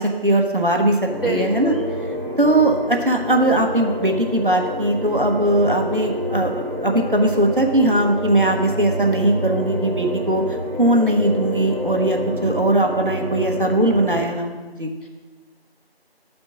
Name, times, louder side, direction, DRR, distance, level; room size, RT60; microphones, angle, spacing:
voice 1, 0.0-1.7 2.4-14.9, right 1 dB, 55° right, 2 dB, 0.8 m, -20 dB
sound 1, 1.1-14.2, equal, 40° right, 1.5 m, -28 dB
voice 2, 1.2-1.9 15.0-15.1, equal, 60° left, -1 dB, 1.2 m, -26 dB
8.9 x 4.3 x 5.8 m, 1.3 s
figure-of-eight pair, 180°, 31 cm